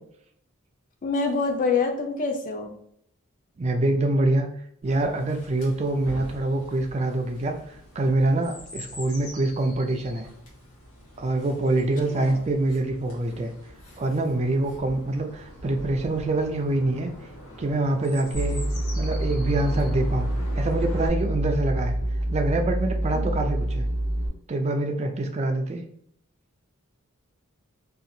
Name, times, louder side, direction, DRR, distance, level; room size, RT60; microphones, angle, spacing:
voice 1, 1.0-2.8 12.1-12.4 23.1-23.3, left 4 dB, 35° left, 4 dB, 0.4 m, -26 dB
voice 2, 3.6-4.5 4.8-7.6 8.0-10.3 11.2-13.5 14.0-17.1 17.6-18.6 19.0-20.3 20.6-21.9 22.3-23.9 24.5-25.8, right 2 dB, 30° right, 4 dB, 0.3 m, -25 dB
Chirp tweet, 4.8-21.1, left 1 dB, 80° left, 1.2 m, -43 dB
sound 1, 18.3-24.3, right 1 dB, 50° left, 1.1 m, -27 dB
2.8 x 2.4 x 2.6 m, 0.67 s
head